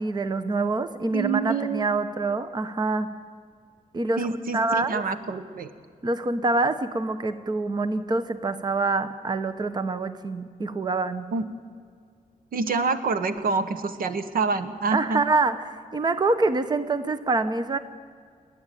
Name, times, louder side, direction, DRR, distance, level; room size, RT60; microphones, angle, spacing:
voice 1, 0.0-3.1 3.9-5.0 6.0-11.3 14.9-17.8, right 3 dB, 30° right, 11 dB, 0.9 m, -26 dB
voice 2, 1.1-2.0 4.2-5.7 11.3-11.4 12.5-15.2, right 4 dB, 80° right, 11 dB, 1.2 m, -27 dB
29.0 x 10.5 x 9.2 m, 2.1 s
wide cardioid pair, 145°, 15 cm